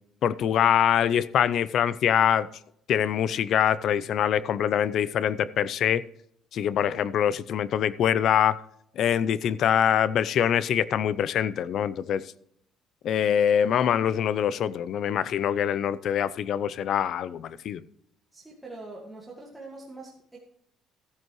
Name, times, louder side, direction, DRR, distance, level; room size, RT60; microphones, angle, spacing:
voice 1, 0.2-2.5 2.9-6.0 6.5-8.6 9.0-12.2 13.0-17.8, left 9 dB, 55° left, 0.5 m, -24 dB
voice 2, 18.3-20.4, right 2 dB, 5° right, 1.9 m, -43 dB
14.5 x 9.1 x 3.2 m
cardioid pair, 145°, 0 cm